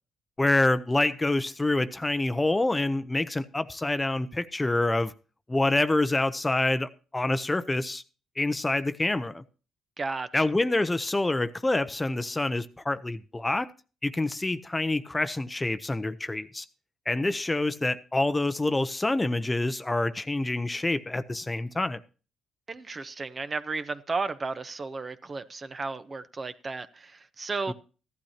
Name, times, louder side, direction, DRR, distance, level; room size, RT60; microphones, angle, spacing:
voice 1, 0.4-5.1 5.5-8.0 8.4-9.4 10.3-13.7 14.0-16.6 17.1-22.0 27.7-27.8, left 2 dB, 15° left, 0.7 m, -27 dB
voice 2, 10.0-10.4 22.7-27.7, right 3 dB, 35° right, 0.9 m, -34 dB
15.0 x 12.0 x 2.8 m
cardioid pair, 90°, 0 cm